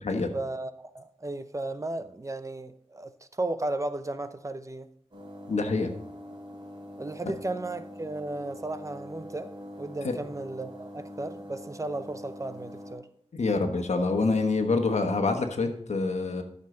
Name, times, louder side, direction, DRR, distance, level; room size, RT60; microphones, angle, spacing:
voice 1, 0.3-4.9 7.0-13.1, right 2 dB, 25° right, 0.6 m, -35 dB
sound 1, 5.1-12.9, equal, 45° right, 3.3 m, -44 dB
voice 2, 5.5-5.9 10.0-10.1 13.3-16.4, left 3 dB, 80° left, 1.3 m, -26 dB
12.5 x 6.6 x 3.8 m
wide cardioid pair, 90°, 11 cm